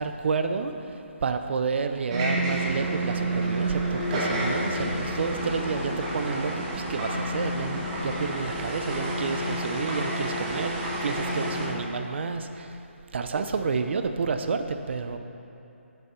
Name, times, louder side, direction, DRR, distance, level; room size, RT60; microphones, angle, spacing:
voice 1, 0.0-10.7 11.0-12.8 13.1-15.2, right 5 dB, 60° right, 8 dB, 0.6 m, -30 dB
sound 1, 2.1-11.7, right 1 dB, 25° right, 1.5 m, -29 dB
7.7 x 7.7 x 4.4 m, 2.7 s
hypercardioid pair, 155°, 7 cm